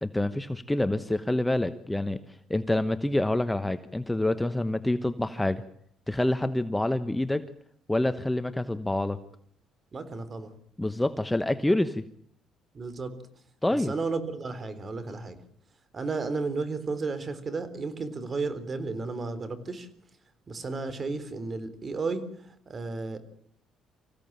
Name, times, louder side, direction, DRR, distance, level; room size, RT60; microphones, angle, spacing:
voice 1, 0.0-5.6 6.1-7.4 7.9-9.2 10.8-12.0 13.6-13.9, left 1 dB, 10° left, 12 dB, 1.1 m, -27 dB
voice 2, 9.9-10.5 12.7-13.1 13.7-15.4 15.9-19.9 20.5-23.2, right 3 dB, 35° right, 13 dB, 3.8 m, -33 dB
26.0 x 16.0 x 9.0 m, 0.67 s
cardioid pair, 90°, 0 cm